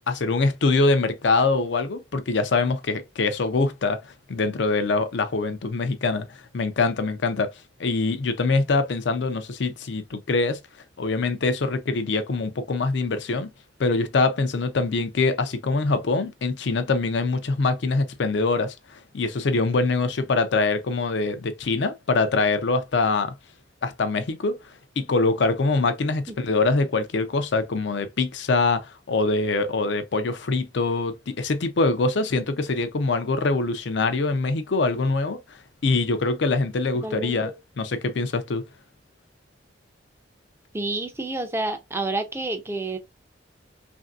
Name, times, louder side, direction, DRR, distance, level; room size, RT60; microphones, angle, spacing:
voice 1, 0.1-7.5 7.8-10.6 11.0-13.5 13.8-23.4 23.8-24.6 25.0-37.5 37.8-38.6, left 3 dB, 65° left, 0.5 m, -24 dB
voice 2, 37.0-37.5 40.7-43.0, right 2 dB, 15° right, 0.4 m, -29 dB
3.2 x 2.6 x 2.3 m
head